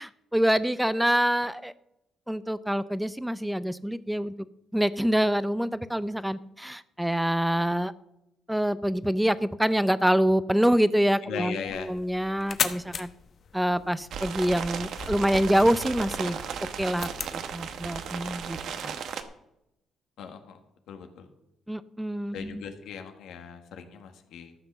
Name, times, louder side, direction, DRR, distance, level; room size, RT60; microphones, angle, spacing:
voice 1, 0.0-1.7 2.3-4.3 4.7-7.9 8.5-13.1 13.5-16.4 16.8-18.6 18.8-18.9 21.7-22.6, equal, 5° right, 15 dB, 0.6 m, -26 dB
voice 2, 11.2-11.9 20.2-20.6 20.9-21.3 22.3-24.5, left 7 dB, 80° left, 6 dB, 1.5 m, -38 dB
sound 1, 11.6-17.4, left 6 dB, 50° left, 1.0 m, -37 dB
sound 2, 14.1-19.2, right 7 dB, 70° right, 1.0 m, -35 dB
13.5 x 6.0 x 6.8 m, 0.85 s
cardioid pair, 90°, 0 cm